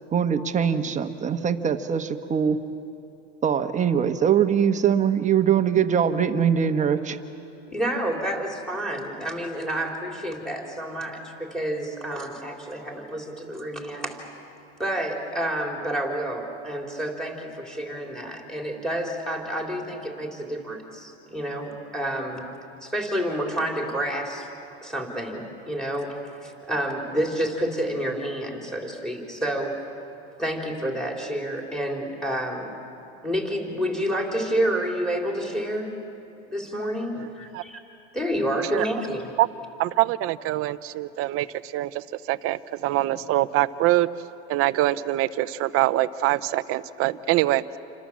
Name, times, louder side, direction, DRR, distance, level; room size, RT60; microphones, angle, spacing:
voice 1, 0.1-2.6 3.4-7.2, right 8 dB, 20° right, 8 dB, 1.2 m, -22 dB
voice 2, 7.7-14.2 14.8-22.4 22.8-24.5 24.8-29.8 30.4-32.7 33.2-35.9 36.5-37.8 38.1-39.3, right 1 dB, ahead, 1 dB, 3.8 m, -29 dB
voice 3, 39.8-44.1 44.5-47.8, right 16 dB, 40° right, 14 dB, 0.7 m, -24 dB
28.5 x 25.5 x 7.4 m, 2.8 s
supercardioid pair, 135°, 34 cm